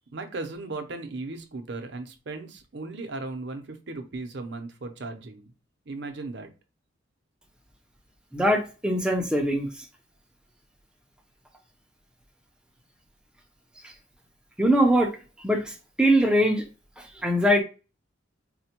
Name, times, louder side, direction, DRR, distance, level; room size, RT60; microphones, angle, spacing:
voice 1, 0.1-5.5 5.9-6.5, right 3 dB, 55° right, 0.6 m, -36 dB
voice 2, 8.3-9.8 13.8-13.9 14.6-15.1 15.4-16.6 17.0-17.6, equal, 5° right, 0.5 m, -22 dB
4.2 x 2.2 x 2.8 m
head